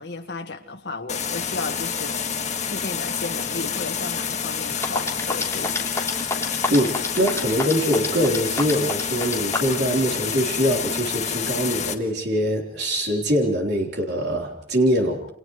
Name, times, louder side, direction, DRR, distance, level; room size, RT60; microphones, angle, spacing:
voice 1, 0.0-2.3 2.7-5.9, left 3 dB, 80° left, 5 dB, 1.7 m, -34 dB
sound 1, 1.1-11.9, left 7 dB, 40° left, 1.6 m, -28 dB
sound 2, 4.5-4.6 4.8-9.8, left 3 dB, 15° left, 3.3 m, -26 dB
voice 2, 6.7-15.2, equal, 70° right, 0 dB, 3.7 m, -23 dB
29.5 x 27.5 x 3.2 m, 0.64 s
head